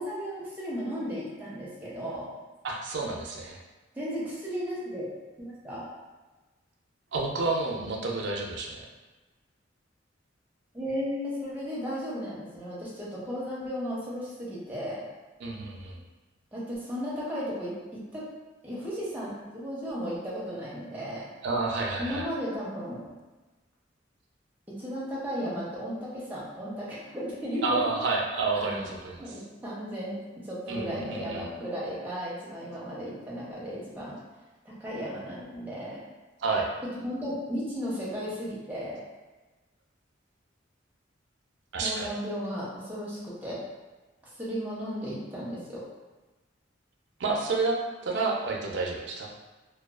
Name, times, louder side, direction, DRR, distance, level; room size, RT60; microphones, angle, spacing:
voice 1, 0.0-2.3 3.9-5.1 5.4-5.8 10.7-15.0 16.5-18.3 18.6-21.3 22.0-23.1 24.7-27.9 28.5-28.9 29.2-30.2 30.4-34.2 34.6-36.0 37.0-39.0 41.8-43.6 44.4-45.8, equal, 10° right, -7 dB, 0.6 m, -35 dB
voice 2, 2.6-3.6 7.1-8.9 15.4-16.0 21.4-22.3 27.6-29.2 30.7-31.5 36.4-36.7 41.7-42.1 47.2-49.3, right 3 dB, 65° right, 0 dB, 0.4 m, -30 dB
2.4 x 2.2 x 2.3 m, 1.2 s
head